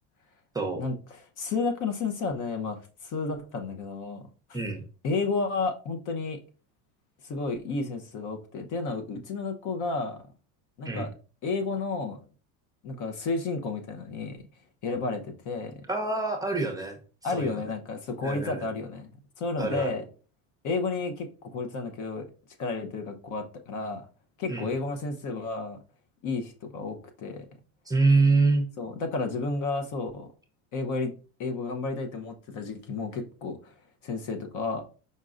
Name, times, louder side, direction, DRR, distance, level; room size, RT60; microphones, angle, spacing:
voice 1, 1.4-4.2 5.0-6.4 7.2-10.2 10.8-11.1 11.4-12.2 12.8-14.4 14.8-15.8 17.2-19.1 19.4-20.0 20.6-21.3 21.5-22.2 22.6-24.0 24.4-25.8 26.2-27.5 28.8-30.3 30.7-31.1 31.4-33.7 34.0-34.8, left 3 dB, 50° left, 0.9 m, -31 dB
voice 2, 15.9-17.0 17.3-17.6 18.2-18.7 19.6-20.0 24.5-24.7 27.9-28.7, right 3 dB, 10° right, 0.8 m, -25 dB
5.4 x 3.7 x 2.5 m
supercardioid pair, 120°, 39 cm